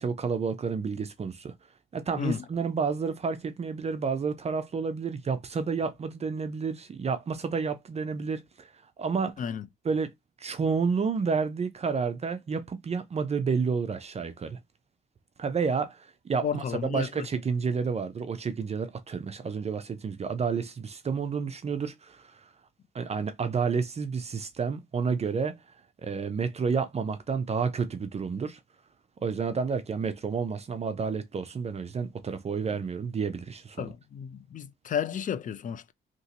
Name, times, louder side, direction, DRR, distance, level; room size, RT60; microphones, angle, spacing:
voice 1, 0.0-1.5 1.9-9.3 9.8-14.6 15.4-22.4 22.9-25.6 26.0-28.6 29.2-33.9, right 5 dB, 30° right, 0.5 m, -30 dB
voice 2, 16.4-17.3 33.8-35.9, left 7 dB, 40° left, 0.4 m, -32 dB
2.9 x 2.7 x 2.7 m
cardioid pair, 90°, 20 cm